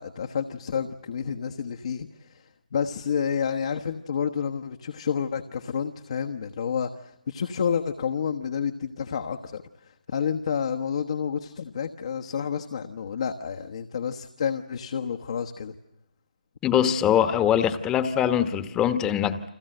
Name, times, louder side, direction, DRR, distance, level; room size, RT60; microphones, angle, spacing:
voice 1, 0.0-15.8, left 7 dB, 50° left, 1.3 m, -30 dB
voice 2, 16.6-19.5, left 9 dB, 15° left, 1.3 m, -23 dB
30.0 x 24.5 x 7.9 m
figure-of-eight pair, 145°, 4 cm